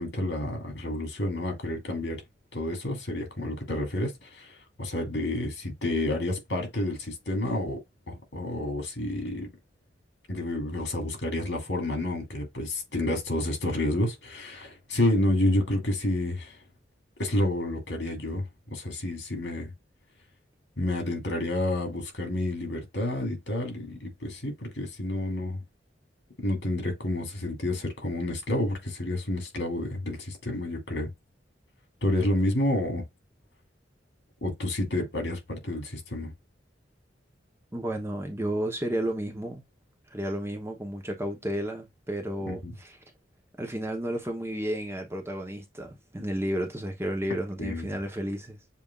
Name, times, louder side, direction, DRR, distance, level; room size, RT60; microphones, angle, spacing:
voice 1, 0.0-2.2 2.5-4.5 4.8-7.8 8.1-9.5 10.3-16.5 17.2-18.4 18.7-19.7 20.8-25.6 26.4-31.1 32.0-33.0 34.4-36.3 42.5-42.6 47.6-47.9, left 1 dB, 65° left, 2.5 m, -29 dB
voice 2, 37.7-39.6 40.1-43.0 43.6-48.6, right 1 dB, 15° right, 0.8 m, -32 dB
7.2 x 2.6 x 2.3 m
head